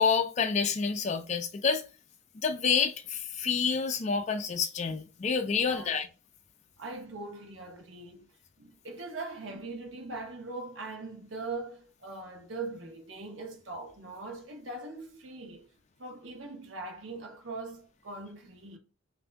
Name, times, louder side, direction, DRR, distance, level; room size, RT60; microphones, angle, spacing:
voice 1, 0.0-1.8 2.4-6.1, left 5 dB, 35° left, 0.4 m, -28 dB
voice 2, 5.5-6.0 6.8-15.7 16.0-18.8, right 3 dB, 70° right, 0.9 m, -41 dB
3.5 x 2.6 x 3.3 m
head